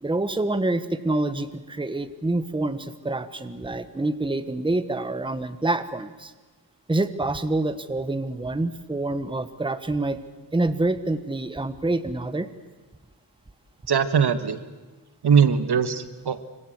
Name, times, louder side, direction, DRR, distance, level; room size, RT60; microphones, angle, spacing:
voice 1, 0.0-6.3 6.9-10.2 10.5-12.5, right 2 dB, 10° right, 11 dB, 1.1 m, -27 dB
voice 2, 13.9-14.6 15.2-16.4, right 7 dB, 70° right, 12 dB, 1.4 m, -20 dB
25.5 x 24.0 x 8.0 m, 1.2 s
wide cardioid pair, 140°, 41 cm